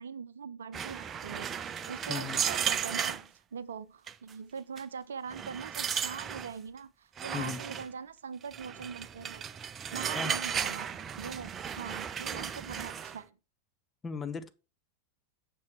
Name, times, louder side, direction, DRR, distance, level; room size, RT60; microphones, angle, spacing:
voice 1, 0.0-1.5 1.9-9.5 9.9-13.3, right 6 dB, 65° right, 0.6 m, -42 dB
sound 1, 0.7-3.3 4.1-4.3 4.8-4.9 5.3-6.5 7.2-7.9 8.5-13.2, right 8 dB, 25° right, 0.6 m, -35 dB
voice 2, 2.1-2.4 7.3-7.6 10.1-10.3 14.0-14.5, left 6 dB, 15° left, 1.1 m, -36 dB
9.5 x 6.8 x 5.0 m
figure-of-eight pair, 90°, 0 cm